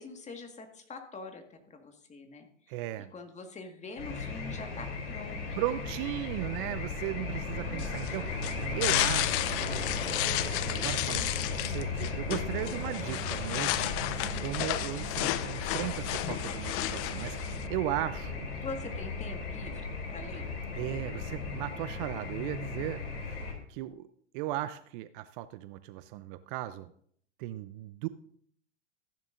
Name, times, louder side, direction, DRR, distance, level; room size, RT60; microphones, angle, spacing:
voice 1, 0.0-2.5 3.1-5.6 7.2-8.0 9.0-10.3 18.6-20.4, left 3 dB, 20° left, 5 dB, 1.7 m, -45 dB
voice 2, 2.7-3.1 5.6-9.7 10.7-13.9 14.4-18.5 20.8-24.1 24.3-26.9 27.4-28.1, right 14 dB, 45° right, 14 dB, 0.6 m, -37 dB
sound 1, 4.0-23.5, left 3 dB, 75° left, 3.4 m, -36 dB
sound 2, 6.0-21.6, right 1 dB, 5° right, 2.2 m, -47 dB
sound 3, 7.8-17.7, left 16 dB, 40° left, 0.6 m, -33 dB
14.5 x 10.5 x 2.6 m, 0.62 s
hypercardioid pair, 95°, 36 cm